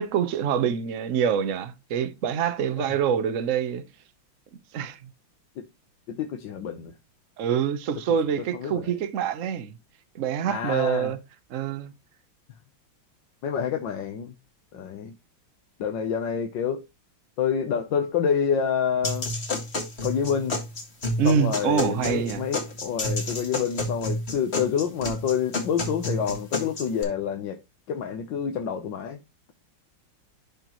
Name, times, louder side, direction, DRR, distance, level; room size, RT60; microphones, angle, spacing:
voice 1, 0.0-3.8 4.7-5.0 7.4-9.8 10.1-11.2 11.5-11.9 21.2-22.4, right 8 dB, 55° right, 1.0 m, -25 dB
voice 2, 6.1-6.9 8.1-8.2 8.5-8.9 10.5-11.2 13.4-14.3 14.7-15.1 15.8-16.8 17.4-19.3 20.0-20.6 21.2-27.6 27.9-29.2, left 7 dB, 70° left, 1.6 m, -28 dB
sound 1, 19.0-27.0, left 2 dB, 35° left, 2.0 m, -30 dB
12.0 x 4.4 x 3.0 m
omnidirectional pair, 2.1 m